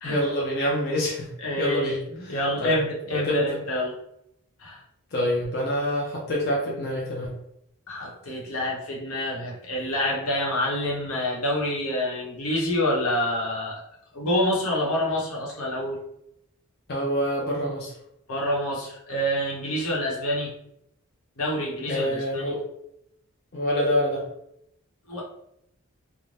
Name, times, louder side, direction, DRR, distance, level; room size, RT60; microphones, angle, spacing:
voice 1, 0.0-1.3 1.6-2.8 3.1-3.4 5.1-7.3 16.9-17.9 21.9-22.6 23.5-24.2, equal, 45° left, -3 dB, 0.5 m, -26 dB
voice 2, 1.4-3.9 4.6-4.8 7.9-13.8 14.1-16.0 18.3-20.5 21.4-22.5 25.1-25.2, left 1 dB, 85° left, -3 dB, 0.9 m, -27 dB
2.6 x 2.1 x 3.2 m, 0.77 s
head